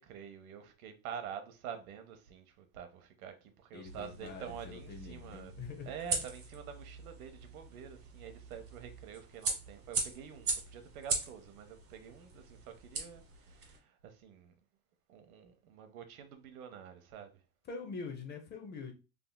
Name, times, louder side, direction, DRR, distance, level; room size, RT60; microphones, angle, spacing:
voice 1, 0.0-5.5 5.8-14.5 15.1-17.4, right 8 dB, 80° right, 0.8 m, -47 dB
voice 2, 3.7-5.9 17.7-18.9, left 4 dB, 25° left, 0.6 m, -44 dB
sound 1, 3.9-13.8, right 3 dB, 30° right, 1.2 m, -40 dB
3.5 x 2.7 x 2.2 m
supercardioid pair, 120°, 43 cm